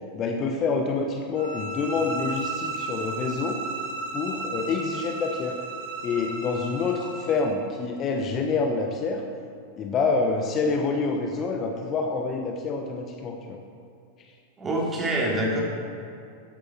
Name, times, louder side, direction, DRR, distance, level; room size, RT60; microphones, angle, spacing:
voice 1, 0.1-3.6 4.1-5.6 6.0-9.2 9.8-13.6, left 4 dB, 30° left, 3 dB, 1.0 m, -27 dB
sound 1, 1.3-7.5, right 3 dB, 55° right, 2.8 m, -34 dB
voice 2, 14.6-15.6, right 1 dB, 20° right, -2 dB, 2.9 m, -25 dB
13.5 x 10.0 x 4.4 m, 2.5 s
figure-of-eight pair, 90°, 0 cm